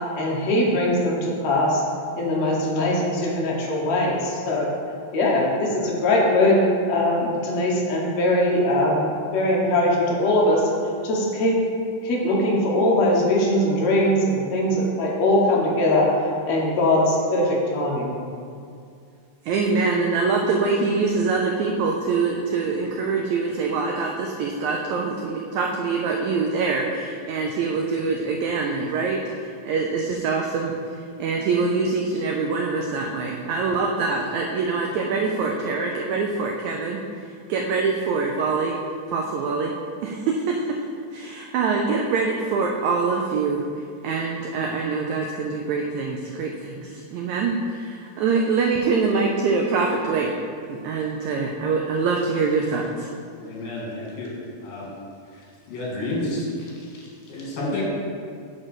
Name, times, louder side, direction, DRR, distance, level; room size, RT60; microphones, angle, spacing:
voice 1, 0.2-1.8 2.2-4.7 5.1-6.6 6.9-10.7 11.0-11.6 12.0-16.2 16.5-18.2, left 1 dB, 60° left, -3 dB, 2.2 m, -21 dB
voice 2, 19.5-30.7 31.2-37.0 37.5-38.8 39.1-39.7 40.0-40.8 41.1-43.6 44.0-50.3 50.7-53.1, right 4 dB, 85° right, 0 dB, 1.6 m, -24 dB
voice 3, 53.3-54.3 54.6-54.9 55.3-55.4 55.7-57.8, left 1 dB, 80° left, -4 dB, 3.5 m, -30 dB
8.3 x 3.8 x 6.3 m, 2.3 s
omnidirectional pair, 4.0 m